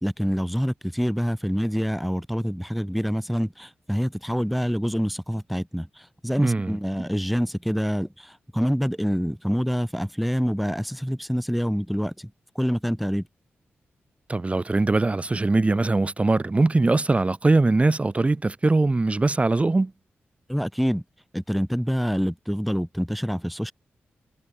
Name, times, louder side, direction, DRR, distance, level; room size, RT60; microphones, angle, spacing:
voice 1, 0.0-5.9 6.2-12.1 12.6-13.2 20.5-21.0 21.3-23.7, equal, ahead, 1.9 m, -26 dB
voice 2, 6.4-6.8 14.3-19.9, right 2 dB, 25° right, 0.5 m, -21 dB
supercardioid pair, 40°, 5 cm